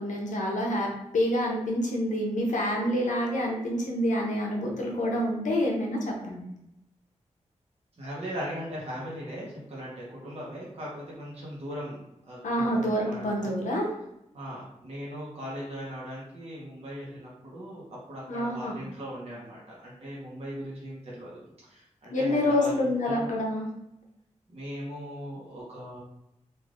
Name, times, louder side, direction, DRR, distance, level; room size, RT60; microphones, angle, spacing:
voice 1, 0.0-6.4 12.4-13.9 18.3-18.8 22.1-23.7, left 1 dB, 85° left, -1 dB, 0.7 m, -27 dB
voice 2, 8.0-12.0 12.3-13.6 14.3-23.3 24.5-26.0, equal, 55° right, -6 dB, 0.9 m, -39 dB
3.2 x 2.5 x 2.4 m, 0.83 s
wide cardioid pair, 125°, 13 cm